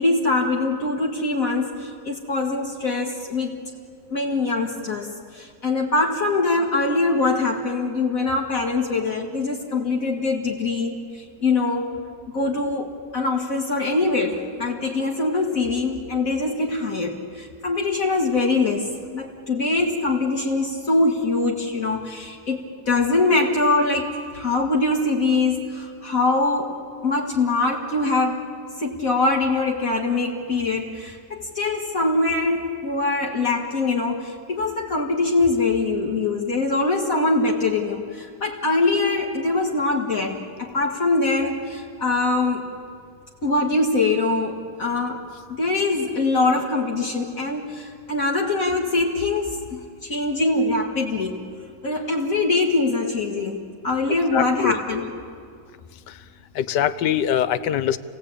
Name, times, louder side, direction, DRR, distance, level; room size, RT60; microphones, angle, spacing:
voice 1, 0.0-3.6 4.1-12.0 12.3-28.4 28.8-42.7 43.4-45.2 45.5-51.4 51.8-55.2, left 3 dB, 50° left, -1 dB, 2.2 m, -23 dB
voice 2, 54.3-54.8 56.6-58.0, left 10 dB, 75° left, 14 dB, 1.4 m, -22 dB
29.0 x 18.5 x 8.6 m, 2.2 s
omnidirectional pair, 1.9 m